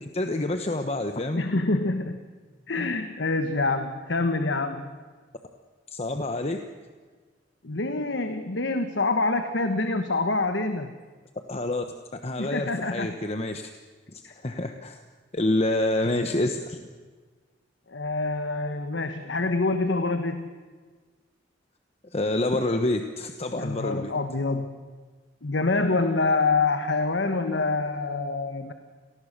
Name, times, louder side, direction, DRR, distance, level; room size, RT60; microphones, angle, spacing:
voice 1, 0.0-1.4 5.9-6.6 11.5-11.8 12.1-13.7 14.1-15.0 15.3-16.8 22.1-24.1, left 1 dB, 35° left, 6 dB, 1.0 m, -27 dB
voice 2, 1.4-2.2 2.7-4.9 7.6-10.9 12.4-13.1 17.9-20.5 23.6-24.7 25.4-28.7, left 3 dB, 70° left, 8 dB, 1.2 m, -26 dB
28.0 x 19.0 x 6.7 m, 1.5 s
head